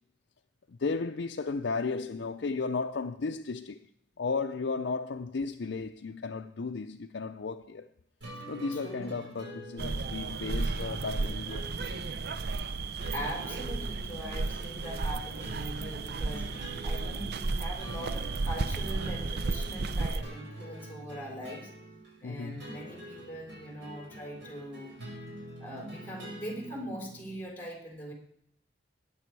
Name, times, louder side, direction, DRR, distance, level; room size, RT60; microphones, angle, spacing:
voice 1, 0.7-3.8 4.2-7.9 8.5-11.7 22.2-22.7, left 4 dB, 70° left, 0.5 m, -34 dB
sound 1, 8.2-27.4, right 1 dB, 85° right, 5.2 m, -46 dB
voice 2, 8.8-9.2 13.1-21.7 22.2-24.9 25.6-28.1, equal, 10° left, 3.9 m, -41 dB
sound 2, 9.8-20.2, right 3 dB, 60° right, 0.6 m, -33 dB
19.5 x 9.1 x 4.7 m
head